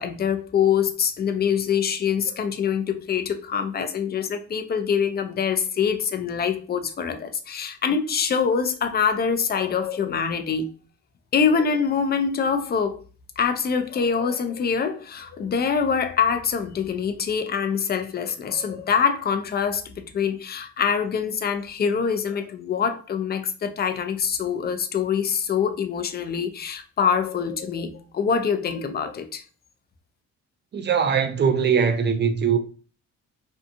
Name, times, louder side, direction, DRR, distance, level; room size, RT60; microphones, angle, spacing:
voice 1, 0.0-10.7 11.3-13.0 13.4-29.4, left 6 dB, 35° left, 0.5 m, -24 dB
voice 2, 30.7-32.6, right 6 dB, 35° right, 0.5 m, -21 dB
2.7 x 2.3 x 2.6 m
cardioid pair, 90°, 30 cm